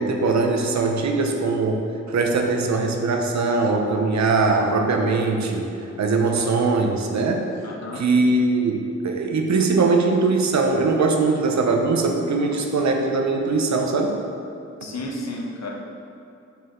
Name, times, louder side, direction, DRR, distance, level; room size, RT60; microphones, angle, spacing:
voice 1, 0.0-5.7 6.0-7.5 8.0-14.2, right 3 dB, 65° right, 3 dB, 0.9 m, -21 dB
voice 2, 7.6-8.1 14.8-15.7, left 1 dB, 60° left, -2 dB, 1.4 m, -32 dB
5.3 x 4.9 x 5.9 m, 2.7 s
cardioid pair, 55°, 30 cm